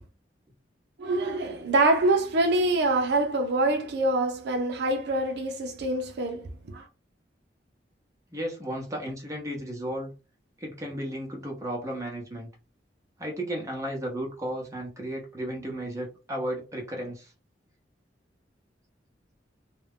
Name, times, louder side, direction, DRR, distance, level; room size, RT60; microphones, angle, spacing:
voice 1, 1.0-6.9, right 2 dB, 65° right, 0.5 m, -25 dB
voice 2, 8.3-10.1 10.6-12.5 13.2-17.3, right 1 dB, 20° right, 0.8 m, -34 dB
2.4 x 2.1 x 3.5 m
head